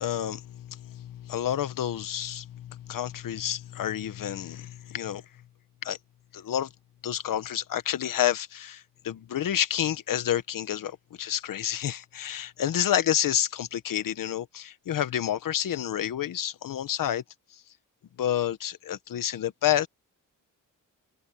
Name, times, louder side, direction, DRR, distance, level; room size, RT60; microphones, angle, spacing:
voice 1, 0.0-5.2 5.8-6.0 6.3-6.7 7.0-17.2 18.2-19.9, left 11 dB, 80° left, 1.2 m, -29 dB
wide cardioid pair, 135°, 32 cm